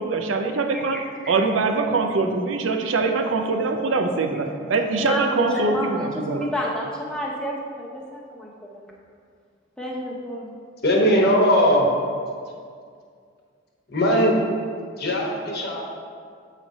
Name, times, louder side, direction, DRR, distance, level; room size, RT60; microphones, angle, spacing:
voice 1, 0.0-6.5, right 3 dB, 80° right, 5 dB, 0.5 m, -23 dB
voice 2, 0.9-1.3 4.6-4.7 5.0-8.5 9.8-10.5, equal, 5° left, -4 dB, 0.8 m, -29 dB
voice 3, 10.8-11.9 12.4-12.5 13.9-14.4 15.0-15.8, equal, 55° left, -1 dB, 1.1 m, -19 dB
7.1 x 3.2 x 5.2 m, 2.2 s
head